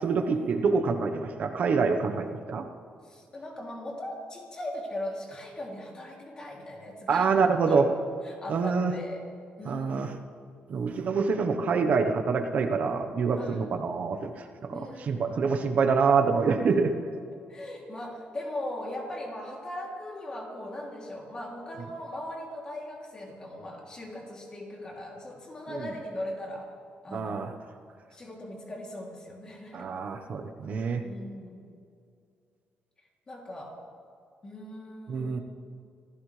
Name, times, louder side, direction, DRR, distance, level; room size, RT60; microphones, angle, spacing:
voice 1, 0.0-2.6 7.1-7.9 8.5-8.9 9.6-10.1 10.7-14.3 14.6-16.9 25.7-25.9 27.1-27.5 29.7-31.0 35.1-35.4, right 5 dB, 45° right, 5 dB, 1.1 m, -26 dB
voice 2, 3.0-7.3 7.6-7.9 8.2-9.2 9.6-10.1 13.4-13.7 14.7-15.4 17.3-26.7 27.0-27.4 28.1-29.9 31.0-31.6 33.3-33.8 34.4-35.4, left 1 dB, 25° left, -1 dB, 2.9 m, -39 dB
26.0 x 16.5 x 3.3 m, 2.4 s
cardioid pair, 165°, 3 cm